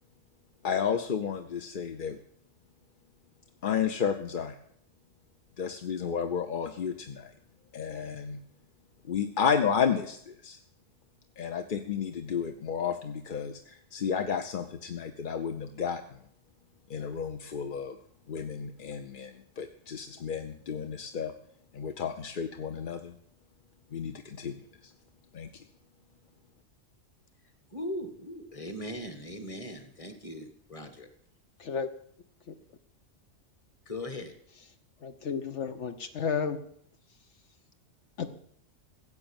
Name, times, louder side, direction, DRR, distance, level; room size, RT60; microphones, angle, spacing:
voice 1, 0.6-2.2 3.6-4.6 5.6-7.3 7.7-8.4 9.1-10.6 11.4-16.2 16.9-18.0 18.3-21.3 21.7-23.1 23.9-24.9 25.3-25.6, left 7 dB, 50° left, 7 dB, 0.8 m, -32 dB
voice 2, 27.7-31.1 33.9-34.3, left 1 dB, 25° left, 8 dB, 1.8 m, -39 dB
voice 3, 35.0-36.6 38.2-38.3, left 6 dB, 70° left, 8 dB, 1.2 m, -32 dB
15.5 x 7.8 x 8.9 m, 0.66 s
omnidirectional pair, 1.3 m